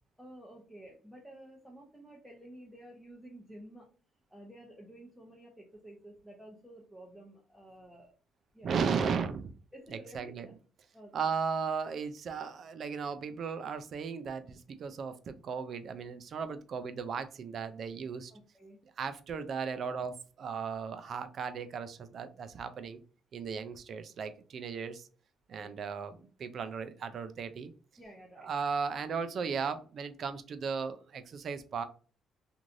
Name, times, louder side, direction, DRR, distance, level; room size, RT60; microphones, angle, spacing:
voice 1, 0.2-3.9 4.3-8.1 8.5-8.8 9.7-10.5 10.9-11.3 18.3-18.8 25.6-25.8 28.0-28.5, right 1 dB, ahead, -2 dB, 0.6 m, -52 dB
voice 2, 8.6-9.4 9.9-10.5 11.1-18.3 19.0-23.0 23.3-25.1 25.5-27.7 28.4-31.8, right 6 dB, 50° right, 11 dB, 0.4 m, -36 dB
3.1 x 2.5 x 2.5 m, 0.39 s
cardioid pair, 125°, 0 cm